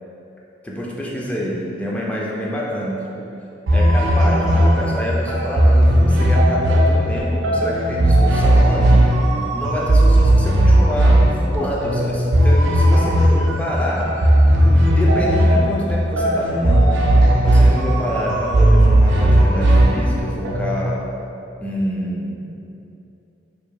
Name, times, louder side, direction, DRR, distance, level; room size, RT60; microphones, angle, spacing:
voice 1, 0.6-3.3 3.7-9.0 9.5-14.2 14.5-17.0 17.4-21.1 21.6-22.4, equal, 10° left, -4 dB, 0.4 m, -27 dB
sound 1, 3.7-20.9, right 1 dB, 90° right, 0.5 m, -15 dB
4.7 x 2.6 x 2.2 m, 2.7 s
head